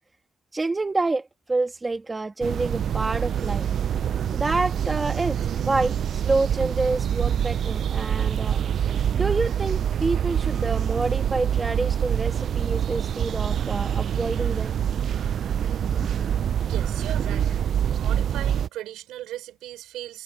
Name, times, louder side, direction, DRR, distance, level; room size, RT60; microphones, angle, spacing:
voice 1, 0.5-3.7 4.3-8.6 9.1-14.7 16.0-16.1, right 3 dB, 25° right, 1.7 m, -27 dB
sound 1, 2.4-18.7, right 9 dB, 60° right, 0.4 m, -25 dB
voice 2, 16.6-17.5 18.0-20.2, right 14 dB, 90° right, 6.3 m, -37 dB
cardioid pair, 90°, 0 cm